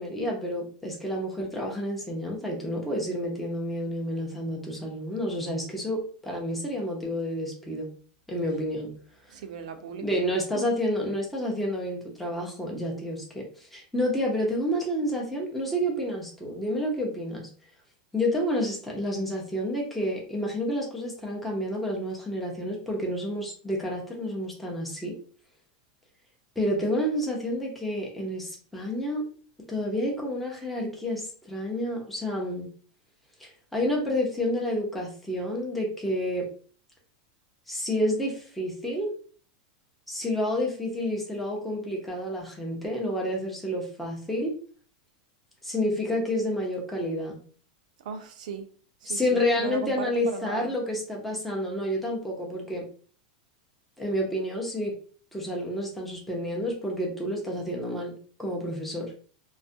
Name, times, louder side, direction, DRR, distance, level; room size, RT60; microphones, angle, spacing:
voice 1, 0.0-7.9 8.3-8.9 10.0-17.5 18.1-25.1 26.6-29.2 29.7-32.7 33.4-36.5 37.7-39.1 40.1-44.5 45.6-47.4 49.1-52.8 54.0-54.9 55.3-58.1 58.4-59.1, left 1 dB, ahead, -2 dB, 0.6 m, -29 dB
voice 2, 9.3-10.2 10.5-10.6 48.0-48.7 49.0-50.8, right 7 dB, 75° right, 7 dB, 0.5 m, -37 dB
2.3 x 2.1 x 2.6 m, 0.43 s
supercardioid pair, 150°, 4 cm